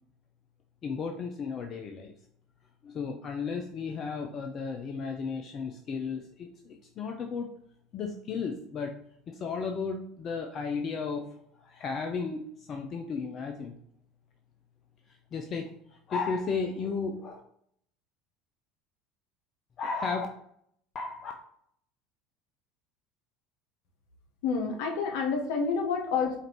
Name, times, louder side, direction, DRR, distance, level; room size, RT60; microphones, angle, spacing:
voice 1, 0.8-2.1 2.8-7.5 7.9-9.0 9.3-11.3 11.6-13.8 15.3-15.7 16.1-17.4 19.8-20.3 20.9-21.3, left 5 dB, 40° left, 4 dB, 0.5 m, -34 dB
voice 2, 24.4-26.4, left 5 dB, 65° left, 2 dB, 0.9 m, -28 dB
5.1 x 2.6 x 2.9 m, 0.68 s
hypercardioid pair, 70°, 0 cm